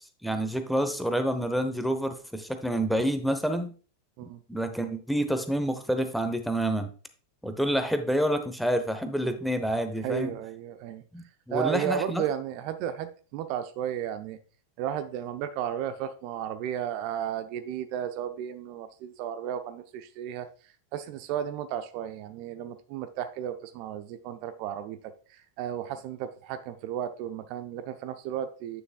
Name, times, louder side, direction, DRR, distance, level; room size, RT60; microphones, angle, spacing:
voice 1, 0.2-3.7 4.5-6.9 7.4-10.3 11.1-12.2, equal, ahead, 8 dB, 0.8 m, -28 dB
voice 2, 10.0-11.0 11.5-14.4 14.8-25.0 25.3-28.8, right 10 dB, 45° right, 10 dB, 0.6 m, -34 dB
8.9 x 6.6 x 2.3 m, 0.38 s
figure-of-eight pair, 90°, 0 cm